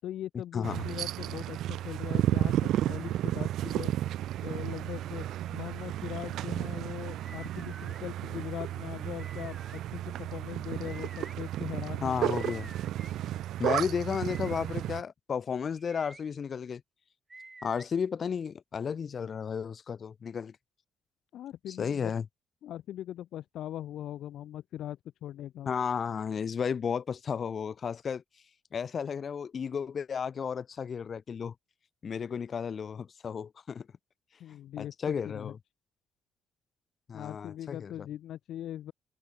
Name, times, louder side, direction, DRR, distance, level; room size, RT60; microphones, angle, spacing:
voice 1, 0.0-3.9 4.4-12.4 21.3-22.1 22.6-25.7 34.4-35.5 37.1-38.9, left 12 dB, 75° left, 5.2 m, -41 dB
voice 2, 0.5-0.8 12.0-12.7 13.6-16.8 17.6-20.5 21.8-22.2 25.7-28.2 28.7-31.5 32.0-33.9 34.8-35.6 37.1-38.1, left 6 dB, 50° left, 0.8 m, -33 dB
sound 1, 0.6-15.0, right 13 dB, 80° right, 0.8 m, -33 dB
sound 2, 7.2-8.0 9.2-9.8 10.8-11.3 12.3-13.1 14.1-14.7 15.7-16.2 17.3-17.9, right 3 dB, 20° right, 6.8 m, -50 dB
open air
cardioid pair, 90°, 0 cm